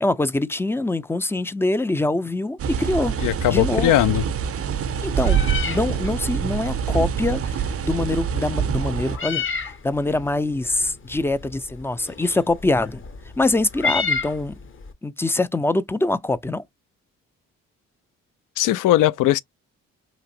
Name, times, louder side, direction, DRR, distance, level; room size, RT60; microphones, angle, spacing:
voice 1, 0.0-3.2 3.5-3.9 5.0-9.4 9.8-13.0 13.4-14.6 15.0-16.6, left 2 dB, 5° left, 0.4 m, -24 dB
sound 1, 2.6-9.2, right 7 dB, 45° right, 0.6 m, -25 dB
voice 2, 3.2-4.2 18.6-19.4, left 14 dB, 65° left, 0.5 m, -19 dB
Meow, 4.8-14.9, left 4 dB, 35° left, 0.8 m, -32 dB
3.0 x 2.5 x 2.7 m
hypercardioid pair, 45°, 34 cm